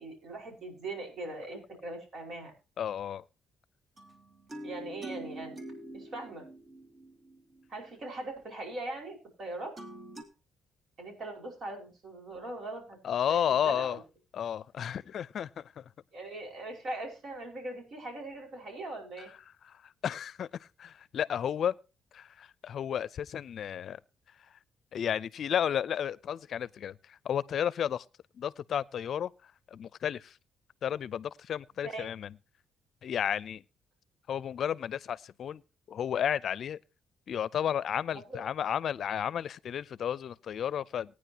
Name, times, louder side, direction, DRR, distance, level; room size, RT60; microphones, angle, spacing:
voice 1, 0.0-2.5 4.6-5.6 5.9-6.5 7.7-9.7 11.0-13.0 13.3-14.0 16.1-19.3 31.8-32.1 38.1-38.4, right 2 dB, 55° right, 5.3 m, -40 dB
voice 2, 2.8-3.2 13.0-14.0 14.3-15.8 20.0-21.7 22.1-24.0 24.9-28.0 28.3-29.3 29.7-30.3 30.8-32.3 33.0-33.6 34.3-35.6 35.9-36.8 37.3-41.1, left 9 dB, 60° left, 0.5 m, -32 dB
sound 1, 4.0-7.9 9.8-10.2, right 1 dB, 40° right, 2.9 m, -45 dB
18.5 x 9.7 x 2.9 m
cardioid pair, 90°, 0 cm